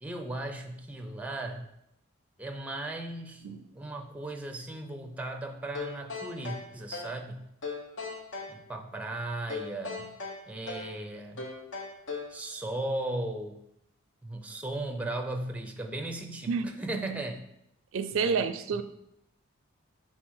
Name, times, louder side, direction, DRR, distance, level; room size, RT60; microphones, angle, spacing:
voice 1, 0.0-1.7 2.4-3.5 3.7-7.5 8.5-10.2 10.5-11.5 12.3-13.6 14.2-17.5 18.2-18.4, right 2 dB, 5° right, 5 dB, 0.5 m, -36 dB
sound 1, 5.7-7.2 7.6-8.6 9.5-11.0 11.4-12.4, left 4 dB, 60° left, 1.0 m, -38 dB
voice 2, 17.9-18.8, right 5 dB, 75° right, 11 dB, 0.4 m, -29 dB
6.2 x 3.7 x 4.7 m, 0.79 s
head